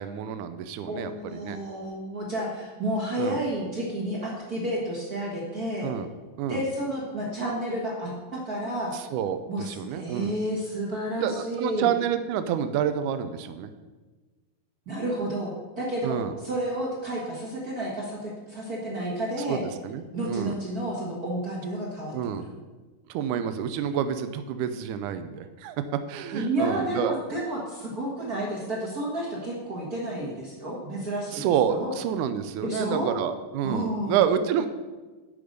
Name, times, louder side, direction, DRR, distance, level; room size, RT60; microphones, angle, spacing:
voice 1, 0.0-1.6 3.2-3.4 5.8-6.1 6.4-6.6 8.9-10.3 11.2-13.7 16.0-16.3 19.5-20.6 22.1-22.5 23.1-25.8 26.1-27.2 31.3-34.7, right 9 dB, 85° right, 10 dB, 1.7 m, -28 dB
voice 2, 0.9-5.9 6.5-8.9 9.5-11.9 14.9-19.6 20.1-22.1 26.3-31.9 32.6-33.1 33.6-34.2, right 1 dB, 65° right, -3 dB, 0.9 m, -31 dB
10.5 x 5.1 x 6.6 m, 1.3 s
omnidirectional pair, 4.2 m